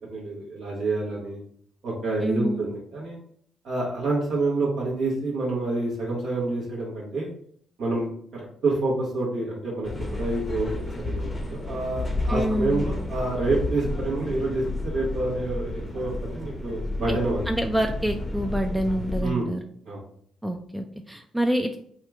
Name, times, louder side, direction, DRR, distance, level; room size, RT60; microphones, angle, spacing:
voice 1, 0.1-1.4 1.8-3.2 3.6-7.3 7.8-10.7 11.0-17.4 19.2-19.5 19.9-20.0, right 2 dB, 65° right, -5 dB, 1.0 m, -28 dB
voice 2, 2.2-2.7 12.3-12.9 17.1-17.2 17.5-19.6 20.4-21.8, equal, 10° right, 4 dB, 0.3 m, -27 dB
sound 1, 9.8-19.2, left 2 dB, 25° left, 0.6 m, -31 dB
2.8 x 2.4 x 3.4 m, 0.62 s
hypercardioid pair, 45°, 0 cm